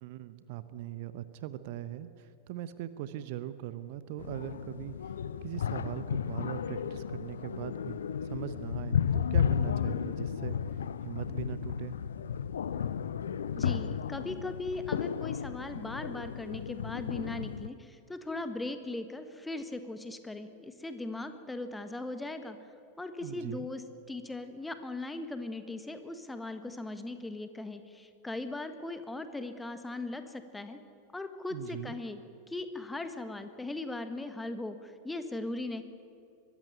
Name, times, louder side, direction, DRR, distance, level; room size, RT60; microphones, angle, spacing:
voice 1, 0.0-5.1 5.4-12.0 23.2-23.7 31.5-32.0, right 12 dB, 50° right, 13 dB, 0.9 m, -41 dB
sound 1, 4.2-17.7, left 8 dB, 65° left, 0.6 m, -33 dB
voice 2, 13.5-22.6 23.0-30.8 31.1-32.2 32.5-35.8, left 2 dB, 10° left, 9 dB, 1.5 m, -39 dB
22.5 x 13.5 x 9.9 m, 2.6 s
figure-of-eight pair, 90°, 0 cm